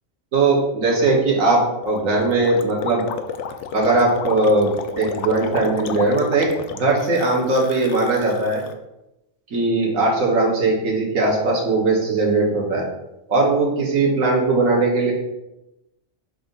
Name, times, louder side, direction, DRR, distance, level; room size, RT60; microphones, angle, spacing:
voice 1, 0.3-3.0 3.7-6.5 6.8-8.6 9.5-12.9 13.3-15.1, right 2 dB, 80° right, -3 dB, 1.7 m, -19 dB
Gurgling, 1.8-8.7, left 7 dB, 70° left, 0.8 m, -32 dB
6.8 x 2.7 x 5.2 m, 0.92 s
omnidirectional pair, 1.4 m